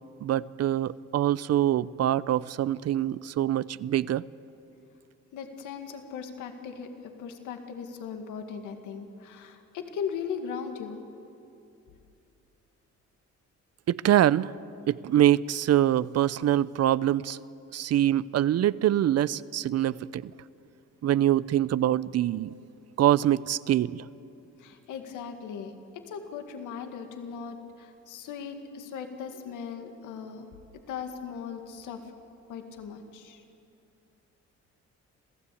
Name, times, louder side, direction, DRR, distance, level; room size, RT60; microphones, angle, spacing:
voice 1, 0.2-4.2 13.9-14.5 14.9-17.4 17.7-20.3 21.0-22.5 23.0-24.0, right 12 dB, 55° right, 19 dB, 0.6 m, -24 dB
voice 2, 5.3-6.9 7.2-11.1 24.6-30.5 30.9-32.0 32.5-33.4, left 6 dB, 90° left, 5 dB, 2.0 m, -38 dB
27.0 x 15.5 x 8.5 m, 2.7 s
cardioid pair, 90°, 30 cm